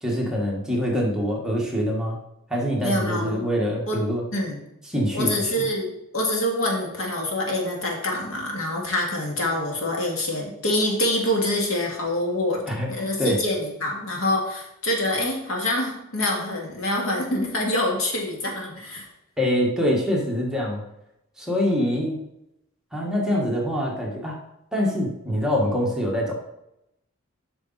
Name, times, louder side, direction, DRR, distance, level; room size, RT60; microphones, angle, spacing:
voice 1, 0.0-2.2 2.5-4.2 4.9-5.5 12.7-13.4 19.4-20.8 21.4-22.2 22.9-24.4 24.7-26.3, equal, 5° right, -3 dB, 1.4 m, -24 dB
voice 2, 2.8-3.4 3.9-4.0 4.3-4.6 5.1-12.6 12.9-19.1, left 1 dB, 75° left, 0 dB, 1.9 m, -26 dB
7.9 x 6.2 x 4.1 m, 0.84 s
head